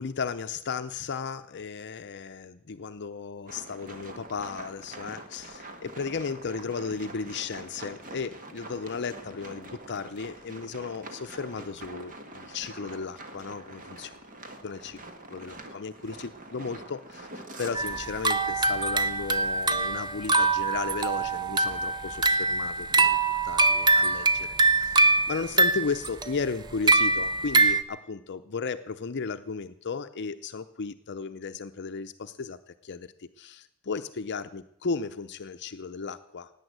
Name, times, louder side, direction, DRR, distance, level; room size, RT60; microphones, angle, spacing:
voice 1, 0.0-14.1 14.6-15.0 15.3-23.2 23.4-36.5, left 5 dB, 55° left, 10 dB, 0.6 m, -35 dB
sound 1, 3.5-18.2, right 2 dB, 40° right, 1.7 m, -45 dB
sound 2, 17.7-27.8, right 3 dB, 20° right, 0.7 m, -24 dB
17.0 x 9.1 x 8.0 m, 0.76 s
head